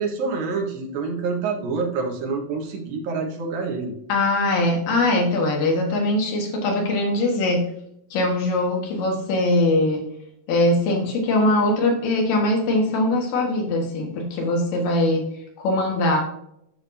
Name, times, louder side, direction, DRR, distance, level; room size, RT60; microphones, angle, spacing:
voice 1, 0.0-3.9, right 4 dB, 80° right, 0 dB, 3.1 m, -27 dB
voice 2, 4.1-7.6 8.1-10.0 10.5-15.3 15.6-16.2, left 2 dB, 70° left, 1 dB, 3.2 m, -21 dB
9.6 x 6.8 x 2.7 m, 0.76 s
omnidirectional pair, 4.1 m